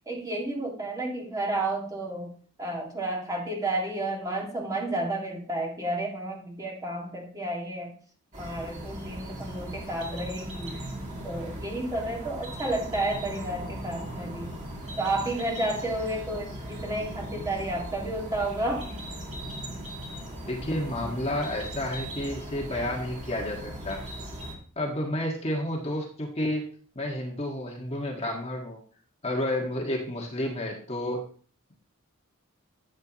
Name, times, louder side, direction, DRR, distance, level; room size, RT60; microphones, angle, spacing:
voice 1, 0.1-2.3 2.6-8.0 8.4-10.8 11.2-14.5 15.0-18.9, right 1 dB, 15° right, -1 dB, 2.1 m, -31 dB
sound 1, 8.3-24.6, right 1 dB, 35° right, 2.6 m, -38 dB
voice 2, 20.4-24.1 24.8-26.7 26.9-28.8 29.2-31.3, left 1 dB, 30° left, 0 dB, 1.6 m, -31 dB
13.0 x 8.0 x 3.0 m, 0.42 s
head